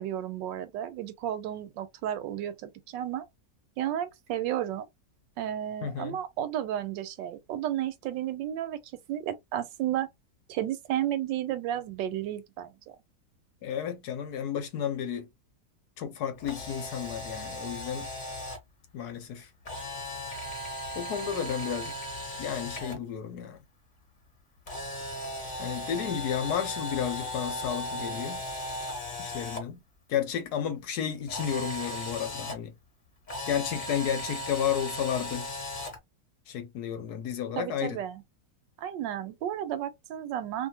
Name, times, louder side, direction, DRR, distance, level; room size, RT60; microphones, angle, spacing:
voice 1, 0.0-3.3 3.8-4.9 5.4-8.8 9.1-10.1 10.5-12.8 37.6-38.2 38.8-40.7, right 11 dB, 85° right, 1.3 m, -32 dB
voice 2, 5.8-6.2 13.6-15.3 16.0-18.1 18.9-19.5 20.9-22.0 22.4-23.6 25.6-28.5 29.2-29.8 30.1-32.8 33.5-35.5 36.5-38.0, left 9 dB, 70° left, 1.1 m, -32 dB
Camera, 16.4-18.6 19.7-23.0 24.7-29.6 31.3-32.5 33.3-36.0, left 1 dB, 35° left, 0.8 m, -37 dB
2.7 x 2.5 x 2.8 m
omnidirectional pair, 1.9 m